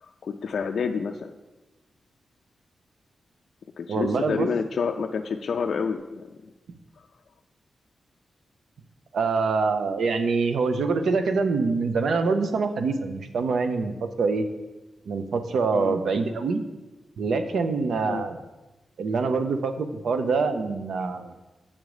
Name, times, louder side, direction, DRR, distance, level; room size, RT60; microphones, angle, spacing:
voice 1, 0.0-1.3 3.8-6.3 15.7-16.0 18.0-18.2, left 5 dB, 65° left, 3 dB, 0.4 m, -29 dB
voice 2, 3.9-4.5 9.1-14.5 15.1-16.6 17.2-18.4 19.0-21.3, right 4 dB, 85° right, 8 dB, 0.6 m, -25 dB
7.3 x 5.2 x 4.8 m, 1.1 s
wide cardioid pair, 150°, 0 cm